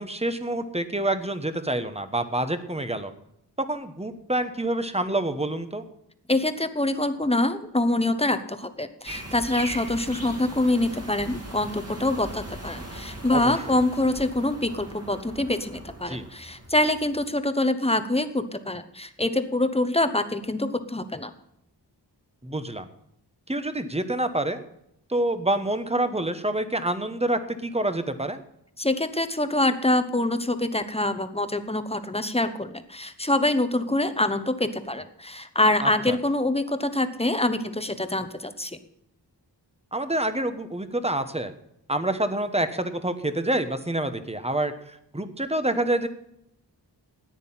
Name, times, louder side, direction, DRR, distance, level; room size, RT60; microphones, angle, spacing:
voice 1, 0.0-3.1 3.6-5.8 13.3-13.6 16.0-16.3 22.4-22.9 23.5-24.6 25.1-28.4 35.8-36.2 39.9-41.5 41.9-46.1, right 1 dB, 15° right, 10 dB, 1.1 m, -27 dB
voice 2, 6.3-21.3 28.8-38.8, left 1 dB, 15° left, 10 dB, 1.1 m, -25 dB
sound 1, 9.1-17.3, right 1 dB, 35° right, 2.3 m, -40 dB
14.0 x 9.7 x 5.7 m, 0.77 s
wide cardioid pair, 70°, 43 cm